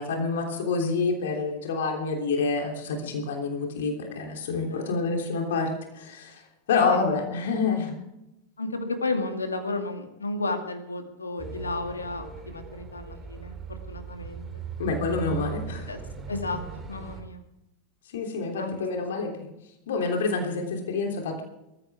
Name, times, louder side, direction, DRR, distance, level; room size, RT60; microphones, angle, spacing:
voice 1, 0.0-6.4 6.7-7.9 14.8-15.9 18.1-19.3 19.9-21.4, left 4 dB, 60° left, 2 dB, 3.3 m, -27 dB
voice 2, 8.6-14.6 15.9-16.0 16.3-16.6 16.9-17.4 18.6-18.7, left 3 dB, 75° left, 5 dB, 2.5 m, -33 dB
sound 1, 11.4-17.2, right 6 dB, 20° right, 3.0 m, -39 dB
21.5 x 14.5 x 3.6 m, 0.89 s
figure-of-eight pair, 90°, 0 cm